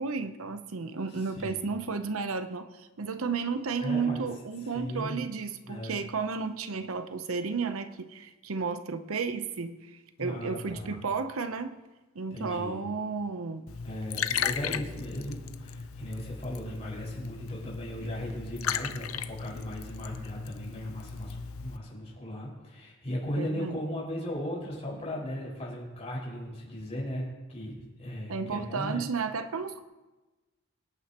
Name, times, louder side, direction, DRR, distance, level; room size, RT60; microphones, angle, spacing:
voice 1, 0.0-9.8 10.2-11.7 12.1-13.6 23.4-23.8 28.3-29.8, right 5 dB, 85° right, 10 dB, 0.8 m, -33 dB
voice 2, 1.1-1.6 3.8-4.3 4.6-5.2 5.7-6.0 10.2-11.0 12.3-12.8 13.8-29.1, equal, 30° left, -5 dB, 5.4 m, -37 dB
Liquid, 13.7-21.8, left 7 dB, 80° left, 0.6 m, -36 dB
24.0 x 9.3 x 3.0 m, 1.2 s
head